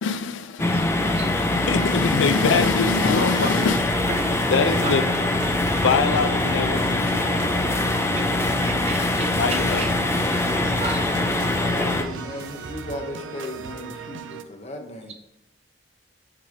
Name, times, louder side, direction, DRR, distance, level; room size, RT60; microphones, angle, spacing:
voice 1, 0.0-0.7 1.0-3.9 4.5-5.1 5.8-7.2 9.3-9.9, left 5 dB, 80° left, 11 dB, 0.4 m, -24 dB
sound 1, 0.6-12.0, left 2 dB, 15° left, 0.4 m, -23 dB
voice 2, 0.6-1.4 2.4-3.6 4.1-5.3 8.1-8.3 8.6-9.9 10.3-12.0, right 3 dB, 35° right, 4 dB, 0.7 m, -36 dB
sound 2, 2.8-12.9, equal, 55° right, 1.0 m, -43 dB
sound 3, 3.1-14.4, right 6 dB, 80° right, 0.4 m, -38 dB
voice 3, 11.6-15.1, left 1 dB, 35° left, 4 dB, 0.7 m, -36 dB
6.6 x 3.4 x 5.0 m, 0.92 s
head